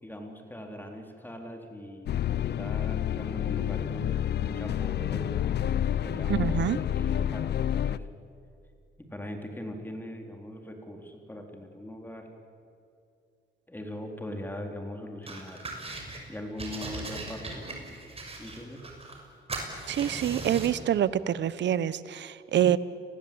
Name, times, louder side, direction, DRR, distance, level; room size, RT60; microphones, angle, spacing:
voice 1, 0.0-6.6 7.0-8.1 9.1-12.3 13.7-15.6 16.3-17.7 18.4-18.9, left 1 dB, 10° left, 3 dB, 4.0 m, -40 dB
sound 1, 2.1-8.0, left 10 dB, 55° left, 0.7 m, -29 dB
voice 2, 6.3-6.8 19.9-22.8, right 10 dB, 65° right, 17 dB, 1.1 m, -26 dB
sound 2, 15.3-16.2 16.6-19.2 19.5-20.8, right 2 dB, 30° right, 6.3 m, -39 dB
30.0 x 20.0 x 8.7 m, 2.6 s
cardioid pair, 90°, 20 cm